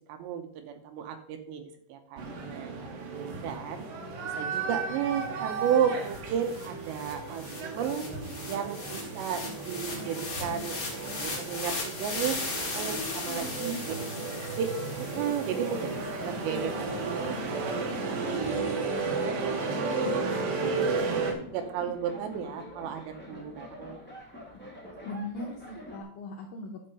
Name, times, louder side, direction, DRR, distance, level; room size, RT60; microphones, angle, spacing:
voice 1, 0.1-2.8 3.1-3.9 4.3-8.1 8.5-12.4 12.7-13.7 14.6-14.7 15.0-17.8 18.1-21.1 21.5-24.0, right 8 dB, 75° right, 6 dB, 2.8 m, -34 dB
sound 1, 2.2-21.3, right 4 dB, 60° right, 2.8 m, -34 dB
sound 2, 5.7-5.8 6.0-16.4, left 3 dB, 50° left, 1.1 m, -38 dB
voice 2, 12.9-13.8 24.5-24.6 25.1-26.8, left 1 dB, 80° left, 1 dB, 2.1 m, -39 dB
sound 3, 14.8-26.0, left 1 dB, 15° left, 0.4 m, -44 dB
11.0 x 5.5 x 5.3 m, 0.62 s
omnidirectional pair, 5.5 m